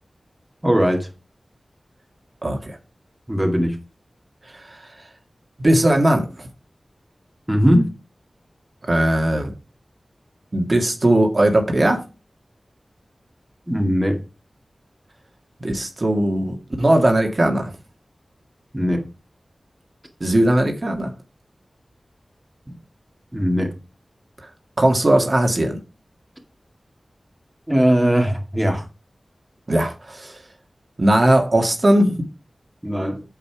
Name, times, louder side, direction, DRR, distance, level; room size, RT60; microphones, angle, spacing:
voice 1, 0.6-1.1 3.3-3.7 7.5-7.9 13.7-14.2 18.7-19.1 23.3-23.7 27.7-28.9 32.8-33.2, equal, 10° right, 2 dB, 2.3 m, -19 dB
voice 2, 2.4-2.8 4.5-4.9 5.6-6.3 8.9-9.5 10.5-12.0 15.6-17.7 20.2-21.1 24.8-25.8 29.7-30.4 31.0-32.2, right 1 dB, 40° right, 3 dB, 2.0 m, -18 dB
9.0 x 7.0 x 4.9 m, 0.30 s
wide cardioid pair, 90°, 0 cm